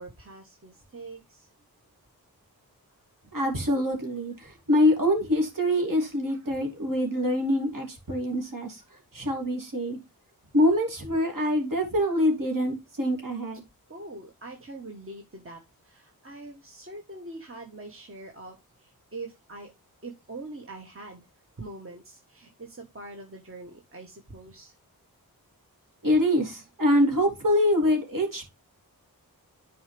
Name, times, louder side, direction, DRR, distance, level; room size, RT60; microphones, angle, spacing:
voice 1, 0.0-1.5 13.9-19.7 20.0-21.3 21.6-24.7, right 2 dB, 35° right, 1.4 m, -43 dB
voice 2, 3.3-8.8 9.1-10.0 10.5-13.6 26.0-28.4, left 1 dB, 60° right, 3.2 m, -25 dB
10.0 x 4.8 x 3.4 m
wide cardioid pair, 70°, 37 cm